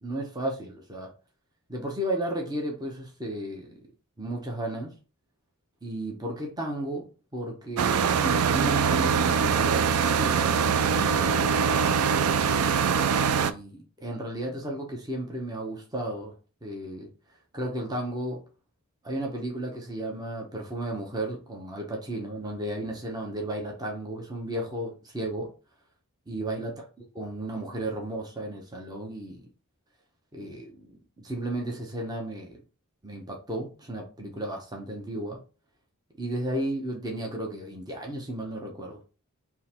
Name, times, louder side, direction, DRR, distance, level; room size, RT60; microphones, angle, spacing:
voice 1, 0.0-1.1 1.7-3.8 4.2-4.9 5.8-12.2 13.0-16.3 16.6-17.1 17.5-18.4 19.0-25.5 26.3-26.8 27.2-29.5 30.3-32.6 33.0-35.4 36.2-39.0, right 1 dB, 15° right, 0.8 m, -34 dB
sound 1, 7.8-13.5, right 6 dB, 80° right, 0.4 m, -23 dB
3.8 x 2.8 x 4.3 m
head